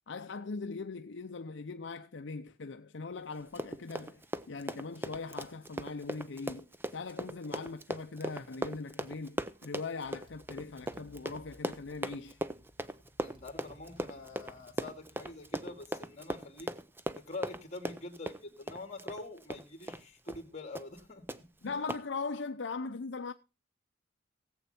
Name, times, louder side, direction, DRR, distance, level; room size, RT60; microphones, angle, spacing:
voice 1, 0.1-4.2 4.5-6.7 6.9-12.4 21.6-23.3, left 4 dB, 65° left, 0.6 m, -40 dB
Run, 3.4-20.0 20.3-20.5 20.8-21.0 21.3-21.4 21.9-22.0, right 1 dB, 10° right, 0.6 m, -39 dB
Motorcycle, 9.5-9.6 10.0-16.2, left 1 dB, 25° right, 1.6 m, -61 dB
voice 2, 13.2-16.7 17.1-21.3 21.7-21.8, left 2 dB, 35° left, 2.6 m, -45 dB
17.5 x 8.0 x 4.4 m
head